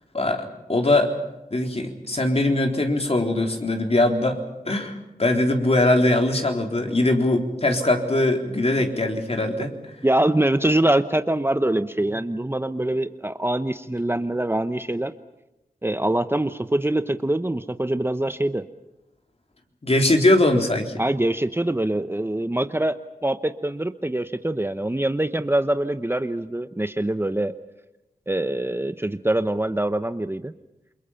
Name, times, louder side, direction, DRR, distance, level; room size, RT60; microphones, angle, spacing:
voice 1, 0.1-1.1 1.5-4.4 4.7-9.7 19.8-21.0, left 2 dB, 45° left, 3 dB, 3.8 m, -21 dB
voice 2, 10.0-15.1 15.8-18.7 21.0-27.5 28.3-30.5, right 1 dB, 15° right, 10 dB, 1.0 m, -24 dB
29.0 x 23.0 x 5.8 m, 0.94 s
cardioid pair, 45°, 15 cm